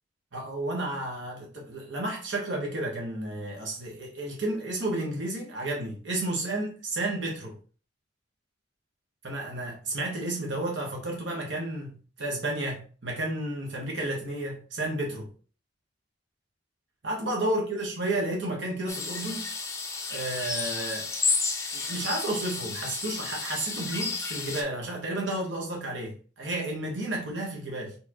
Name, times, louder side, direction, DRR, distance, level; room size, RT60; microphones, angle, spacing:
voice 1, 0.3-7.6 9.2-15.3 17.0-19.4 20.1-21.1 21.7-28.0, right 1 dB, 85° right, -1 dB, 1.2 m, -32 dB
sound 1, 18.9-24.6, left 4 dB, 15° left, 0.6 m, -32 dB
4.3 x 3.6 x 2.9 m, 0.40 s
head